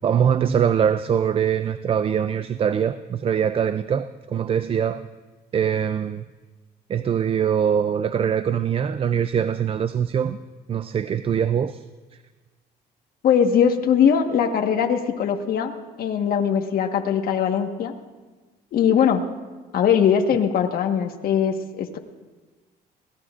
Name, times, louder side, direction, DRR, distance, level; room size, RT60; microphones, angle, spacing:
voice 1, 0.0-5.1 5.5-6.3 6.9-10.4 10.7-11.8, right 8 dB, 35° right, 0.4 m, -23 dB
voice 2, 13.2-15.7 16.0-17.9 18.7-19.2 19.7-22.0, left 8 dB, 60° left, 1.4 m, -20 dB
26.5 x 17.5 x 2.5 m
cardioid pair, 110°, 17 cm